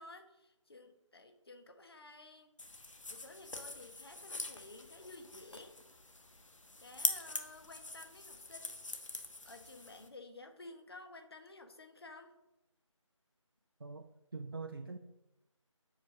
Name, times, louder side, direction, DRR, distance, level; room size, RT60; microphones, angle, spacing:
voice 1, 0.0-2.5 3.1-5.8 6.8-8.8 9.4-12.3, left 2 dB, 50° left, 6 dB, 1.2 m, -53 dB
sound 1, 2.6-10.1, left 2 dB, 70° left, 1.3 m, -43 dB
voice 2, 13.8-15.0, right 4 dB, 45° right, 4 dB, 0.5 m, -44 dB
7.9 x 5.1 x 6.2 m, 0.95 s
figure-of-eight pair, 160°, 17 cm